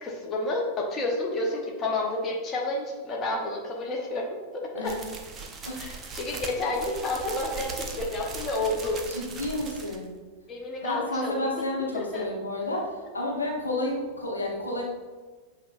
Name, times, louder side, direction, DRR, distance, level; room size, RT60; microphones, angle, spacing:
voice 1, 0.0-4.2 4.5-4.9 5.8-9.0 10.5-11.5 11.9-12.2, left 2 dB, 25° left, -1 dB, 0.7 m, -30 dB
sound 1, 4.8-10.0, right 4 dB, 20° right, 0.5 m, -39 dB
voice 2, 5.6-6.0 9.1-10.1 10.8-14.8, left 1 dB, 80° left, -3 dB, 1.0 m, -31 dB
7.3 x 2.9 x 2.4 m, 1.4 s
figure-of-eight pair, 90°, 0 cm